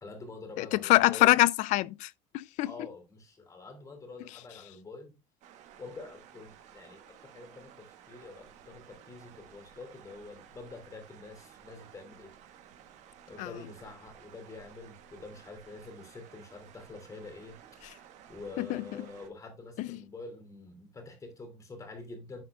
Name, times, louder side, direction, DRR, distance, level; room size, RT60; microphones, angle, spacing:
voice 1, 0.0-1.4 2.7-5.2 5.8-12.3 13.3-17.6 18.3-22.4, left 3 dB, 25° left, 2.8 m, -46 dB
voice 2, 0.6-2.7 13.4-13.5 18.6-18.8 19.8-19.9, left 18 dB, 65° left, 0.4 m, -25 dB
sound 1, 5.4-19.3, right 9 dB, 60° right, 1.4 m, -55 dB
11.0 x 4.8 x 2.4 m
cardioid pair, 130°, 13 cm